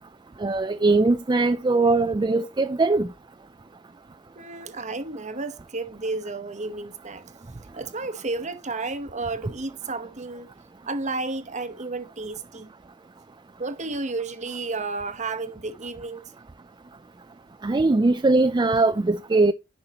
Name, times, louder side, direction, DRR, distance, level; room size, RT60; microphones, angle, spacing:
voice 1, 0.4-3.1 17.6-19.5, right 3 dB, 20° right, 0.4 m, -20 dB
voice 2, 4.4-7.2 7.7-10.5 10.8-12.7 13.6-16.3, right 3 dB, 40° right, 1.0 m, -32 dB
10.5 x 5.4 x 2.9 m
head